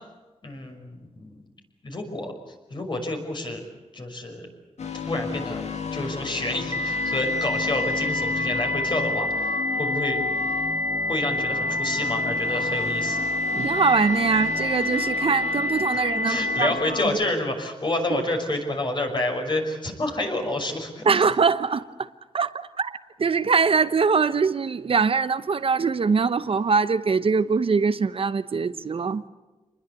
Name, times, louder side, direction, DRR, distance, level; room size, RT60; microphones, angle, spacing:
voice 1, 0.4-1.4 1.8-2.3 2.7-3.6 3.9-4.5 5.1-5.6 5.9-10.2 11.1-13.2 16.3-21.0, left 2 dB, 40° left, 3 dB, 5.9 m, -29 dB
sound 1, 4.8-17.1, left 5 dB, 70° left, 2.5 m, -34 dB
sound 2, 6.7-16.7, left 1 dB, 25° right, 2.2 m, -27 dB
voice 2, 13.5-16.7 18.1-18.2 21.0-22.1 22.3-29.2, right 5 dB, 55° right, 12 dB, 0.9 m, -23 dB
27.0 x 21.0 x 8.3 m, 1.2 s
wide cardioid pair, 100°, 12 cm